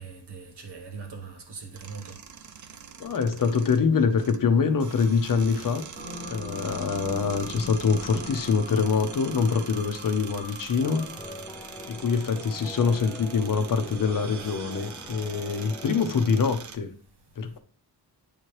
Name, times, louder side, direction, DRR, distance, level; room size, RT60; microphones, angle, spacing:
voice 1, 0.0-2.2, right 5 dB, 70° right, 1.4 m, -41 dB
sound 1, 1.7-16.8, right 7 dB, 45° right, 0.5 m, -43 dB
voice 2, 3.0-5.8 6.3-11.1 11.9-16.9 17.4-17.6, left 5 dB, 50° left, 0.7 m, -25 dB
sound 2, 6.0-11.6, left 1 dB, 25° right, 1.2 m, -41 dB
sound 3, 10.8-16.5, left 2 dB, 5° left, 0.5 m, -43 dB
8.8 x 3.0 x 4.7 m
wide cardioid pair, 175°, 42 cm